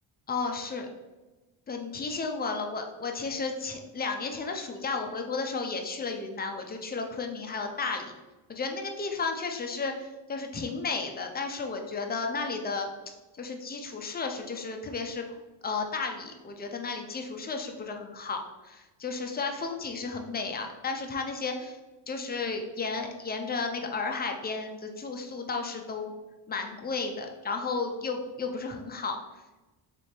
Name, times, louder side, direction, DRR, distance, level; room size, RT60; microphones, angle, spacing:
voice 1, 0.3-0.9 1.7-8.1 8.5-12.9 13.4-15.3 15.6-21.8 22.1-26.1 26.5-29.2, left 4 dB, 20° left, 4 dB, 0.3 m, -33 dB
3.4 x 3.3 x 4.2 m, 1.1 s
cardioid pair, 135°, 49 cm